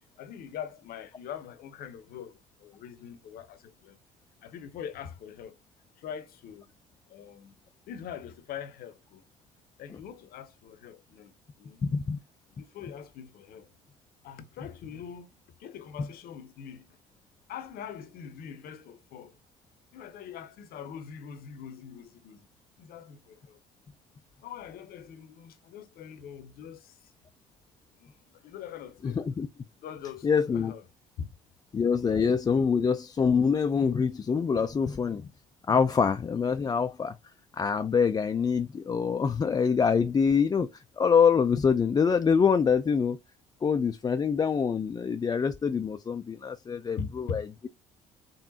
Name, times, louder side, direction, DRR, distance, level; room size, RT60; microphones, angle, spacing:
voice 1, 0.2-4.0 4.4-5.5 6.0-6.6 7.1-7.5 7.9-9.2 9.8-11.8 12.6-13.7 14.2-15.3 15.6-17.0 17.5-19.3 19.9-22.4 22.8-23.6 24.4-27.0 28.0-28.1 28.4-29.2 29.8-30.8 31.2-31.3 47.0-47.4, left 8 dB, 55° left, 0.7 m, -42 dB
voice 2, 11.8-12.2 16.0-16.1 29.0-29.5 30.2-30.7 31.7-35.3 35.7-37.2 37.5-43.2 43.6-47.7, left 6 dB, 20° left, 0.4 m, -25 dB
3.9 x 3.6 x 2.7 m
hypercardioid pair, 55°, 18 cm